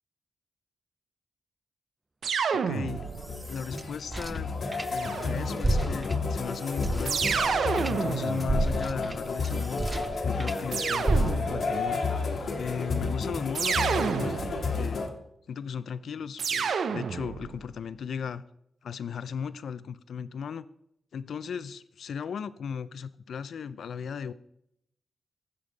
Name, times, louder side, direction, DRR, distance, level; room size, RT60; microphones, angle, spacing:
sound 1, 2.2-3.4 4.9-5.8 7.0-9.4 10.7-11.8 13.5-14.9 16.4-17.6, right 6 dB, 80° right, 0.6 m, -30 dB
voice 1, 2.5-3.0 3.5-4.5 4.9-7.4 7.9-9.9 10.2-12.0 12.6-15.0 15.5-18.4 18.8-20.7 21.1-24.3, left 7 dB, 80° left, 15 dB, 0.4 m, -36 dB
sound 2, 2.7-15.1, left 4 dB, 65° left, 1.2 m, -31 dB
sound 3, 2.9-5.3 5.6-10.6 11.1-11.7, right 2 dB, 20° right, 0.3 m, -32 dB
14.5 x 5.2 x 4.0 m, 0.76 s
wide cardioid pair, 110°, 0 cm